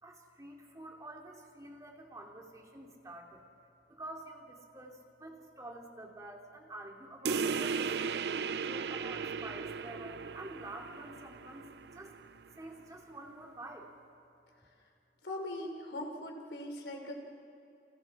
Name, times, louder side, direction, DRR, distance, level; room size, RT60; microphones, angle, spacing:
voice 1, 0.0-3.5 3.9-8.1 8.5-12.2 12.6-13.9, right 1 dB, 20° right, 0 dB, 2.6 m, -48 dB
sound 1, 7.2-12.3, right 5 dB, 70° right, 0.5 m, -36 dB
voice 2, 15.2-17.2, left 1 dB, 85° left, 3 dB, 3.8 m, -40 dB
29.5 x 28.5 x 4.8 m, 2.7 s
head